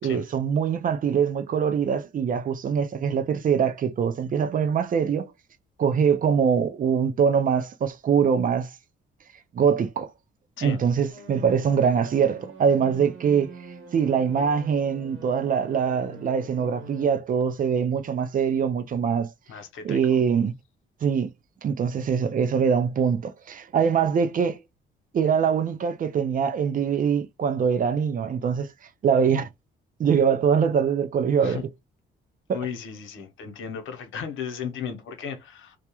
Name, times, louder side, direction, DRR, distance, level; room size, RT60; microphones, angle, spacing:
voice 1, 0.0-5.3 5.8-8.7 9.5-10.1 10.6-13.5 13.9-19.3 19.8-20.5 21.0-21.3 21.6-24.6 25.1-28.7 29.0-29.5 30.0-31.6 32.5-32.6, right 7 dB, 45° right, 0.5 m, -23 dB
sound 1, 11.1-17.2, right 3 dB, 80° right, 1.0 m, -45 dB
voice 2, 19.5-20.2 31.4-31.6 32.5-35.8, left 7 dB, 80° left, 0.8 m, -35 dB
2.3 x 2.1 x 2.8 m
cardioid pair, 90°, 20 cm